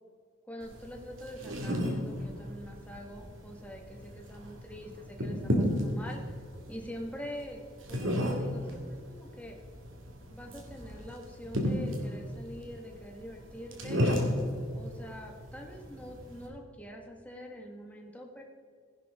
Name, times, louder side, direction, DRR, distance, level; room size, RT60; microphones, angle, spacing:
voice 1, 0.5-6.2 6.7-9.6 10.3-14.0 14.7-18.4, equal, 5° left, 0 dB, 1.5 m, -45 dB
sound 1, 0.6-16.5, equal, 70° right, 2.3 m, -34 dB
16.0 x 11.0 x 3.6 m, 2.1 s
head